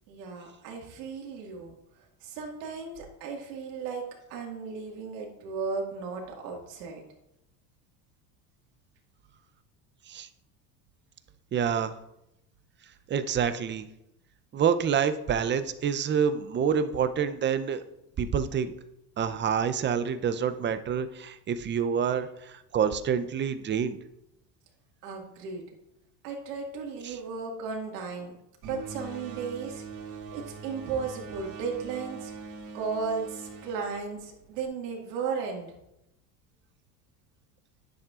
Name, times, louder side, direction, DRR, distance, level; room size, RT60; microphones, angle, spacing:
voice 1, 0.1-1.8 2.2-4.0 4.3-7.0 25.0-25.6 26.2-28.3 28.6-32.3 32.7-35.7, right 5 dB, 85° right, 0 dB, 2.1 m, -35 dB
voice 2, 11.5-11.9 13.1-13.9 14.5-17.8 18.2-18.7 19.2-24.0 27.0-27.2, right 7 dB, 25° right, 11 dB, 0.6 m, -27 dB
sound 1, 28.6-34.7, right 4 dB, 60° right, 2.5 m, -42 dB
10.5 x 7.5 x 2.5 m, 0.86 s
supercardioid pair, 100°, 46 cm